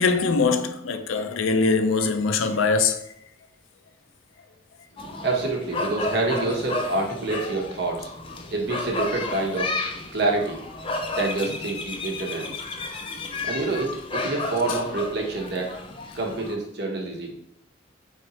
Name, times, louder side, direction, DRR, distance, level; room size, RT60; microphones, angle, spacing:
voice 1, 0.0-3.0, left 4 dB, 85° left, 0.5 m, -22 dB
sound 1, 5.0-16.6, left 2 dB, 25° left, 0.4 m, -32 dB
voice 2, 5.0-8.1 8.5-9.7 10.1-10.6 11.1-12.5 13.1-15.7 16.1-17.3, right 2 dB, 55° right, 0.9 m, -27 dB
3.9 x 3.2 x 4.2 m
head